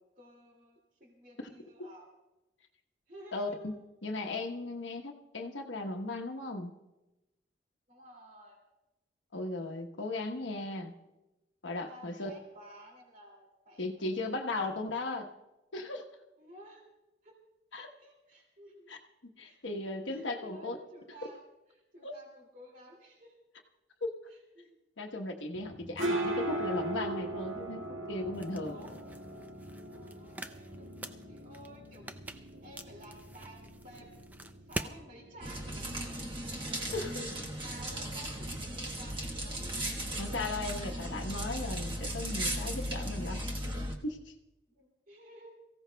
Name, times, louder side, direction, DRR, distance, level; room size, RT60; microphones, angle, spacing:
voice 1, 0.0-2.1 3.1-3.8 7.9-8.6 11.8-14.4 16.4-16.8 17.2-17.4 17.7-18.9 19.4-21.4 21.7-23.4 24.3-24.8 28.6-29.0 29.9-36.3 37.6-39.9 44.7-45.5, right 1 dB, 40° right, 0 dB, 2.4 m, -54 dB
voice 2, 3.3-3.8 4.0-6.7 9.3-10.9 11.6-12.3 13.8-15.3 15.7-16.0 17.7-17.9 18.9-19.0 19.4-20.8 22.0-22.1 24.0-24.1 25.0-27.8 28.1-28.8 36.9-37.3 40.2-43.4 44.0-44.3, left 2 dB, 70° left, 2 dB, 1.1 m, -37 dB
sound 1, 25.6-43.0, right 1 dB, 90° right, 1.8 m, -41 dB
sound 2, 28.3-35.0, right 1 dB, 10° right, 0.4 m, -45 dB
sound 3, 35.4-43.9, right 1 dB, 25° right, 1.2 m, -36 dB
23.5 x 15.5 x 2.3 m, 1.0 s
head